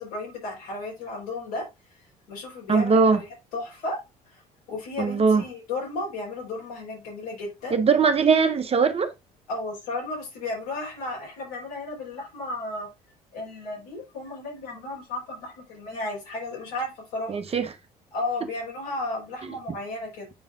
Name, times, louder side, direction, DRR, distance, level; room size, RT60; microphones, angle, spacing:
voice 1, 0.0-1.6 2.3-3.2 3.5-4.0 4.3-4.4 4.7-7.8 9.5-12.9 13.3-17.6 18.1-20.3, left 2 dB, 70° left, 4.4 m, -34 dB
voice 2, 2.7-3.2 5.0-5.4 7.7-9.1 17.3-17.7 19.4-19.5, right 5 dB, 30° right, 1.2 m, -20 dB
8.7 x 5.4 x 2.6 m
figure-of-eight pair, 55°, 20 cm